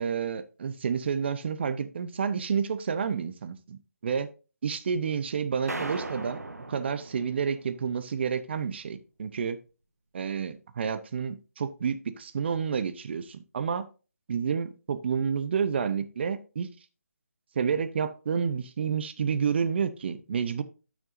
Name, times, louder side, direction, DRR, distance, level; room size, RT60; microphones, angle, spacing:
voice 1, 0.0-4.3 4.6-6.4 6.7-9.6 10.1-13.9 14.3-16.7 17.5-20.6, right 6 dB, 45° right, 0.8 m, -29 dB
sound 1, 5.7-8.1, right 2 dB, 90° right, 1.2 m, -38 dB
12.0 x 6.2 x 2.6 m
figure-of-eight pair, 155°, 8 cm